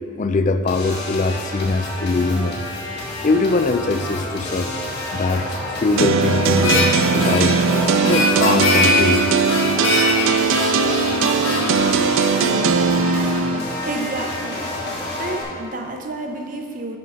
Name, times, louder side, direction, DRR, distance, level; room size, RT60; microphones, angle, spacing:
voice 1, 0.0-2.6 3.2-4.8 5.1-5.5 5.8-7.6 8.0-9.4, left 3 dB, 35° left, 9 dB, 0.3 m, -21 dB
sound 1, 0.7-15.4, left 1 dB, 55° left, 1.8 m, -30 dB
sound 2, 6.0-13.6, right 5 dB, 75° right, 0.4 m, -19 dB
Harmonica, 6.5-13.0, left 2 dB, 80° left, 1.5 m, -23 dB
voice 2, 13.8-14.7 15.2-17.0, right 2 dB, 40° right, 4 dB, 0.7 m, -30 dB
10.5 x 3.8 x 5.7 m, 2.4 s
head